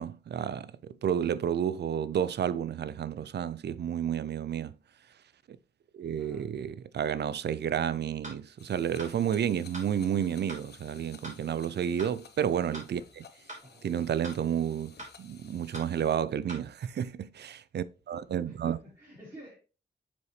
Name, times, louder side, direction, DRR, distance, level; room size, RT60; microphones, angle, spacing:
voice 1, 0.0-4.7 5.9-13.3 13.8-18.8, right 9 dB, 65° right, 0.4 m, -31 dB
sound 1, 8.2-8.4 9.0-9.1 9.7-9.9 10.5-10.6 11.2-11.4 12.0-12.1 12.7-12.9 13.5-13.6 14.2-14.4 15.0-15.1 15.7-15.9 16.5-16.6, right 1 dB, 40° right, 3.2 m, -43 dB
sound 2, 8.6-16.2, left 6 dB, 65° left, 0.7 m, -55 dB
voice 2, 18.4-19.5, equal, 25° right, 3.0 m, -50 dB
6.9 x 4.9 x 3.1 m
wide cardioid pair, 100°, 19 cm